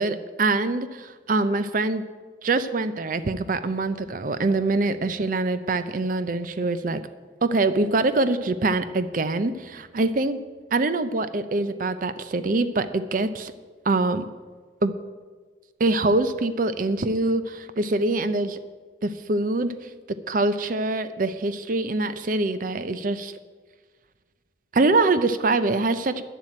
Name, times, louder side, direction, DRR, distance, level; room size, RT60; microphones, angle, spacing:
voice 1, 0.0-2.0 2.4-7.0 7.4-10.4 10.7-13.5 13.9-14.3 14.8-14.9 15.8-18.6 19.0-19.8 20.3-23.3 24.7-26.2, right 2 dB, 45° right, 12 dB, 0.5 m, -24 dB
10.5 x 7.3 x 8.9 m, 1.5 s
head